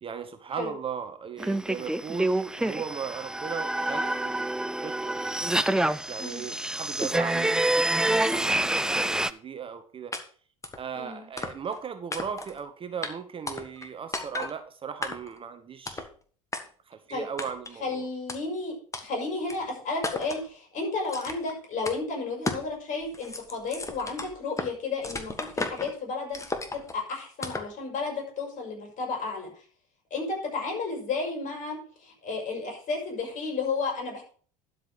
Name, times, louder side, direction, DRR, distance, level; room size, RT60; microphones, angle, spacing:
voice 1, 0.0-5.3 6.1-10.1 10.8-16.1 16.9-18.1, right 7 dB, 30° right, 9 dB, 1.1 m, -37 dB
sound 1, 1.4-9.3, right 1 dB, 5° right, 0.5 m, -27 dB
sound 2, 10.1-10.2 10.6-10.8 11.4-11.8 12.1-12.6 13.0-13.1 13.5-13.9 14.1-14.5 15.0-15.4 15.9-16.1 16.5-16.6 17.4-17.8 18.3-18.4 18.9-19.0 19.5-19.6 20.0-20.4 21.1-21.5 21.9-22.0 22.5-22.7 23.0-24.7 25.0-25.9 26.3-26.9 27.4-27.7, left 3 dB, 15° left, 1.7 m, -34 dB
voice 2, 11.0-11.3 17.1-17.3 17.8-26.4 26.7-29.5 30.1-34.2, left 3 dB, 45° left, 1 dB, 5.3 m, -32 dB
12.0 x 5.3 x 6.1 m, 0.43 s
hypercardioid pair, 70°, 18 cm